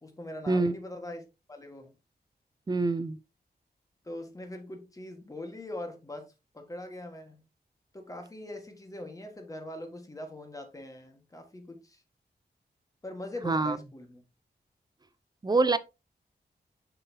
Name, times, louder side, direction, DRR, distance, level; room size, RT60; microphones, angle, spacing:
voice 1, 0.0-1.2 1.5-1.9 4.0-6.3 6.5-7.4 7.9-12.0 13.0-14.2, left 1 dB, 20° left, 1.5 m, -42 dB
voice 2, 2.7-3.2 13.4-13.8 15.4-15.8, right 3 dB, 25° right, 0.5 m, -25 dB
6.8 x 5.5 x 2.7 m
wide cardioid pair, 145°, 17 cm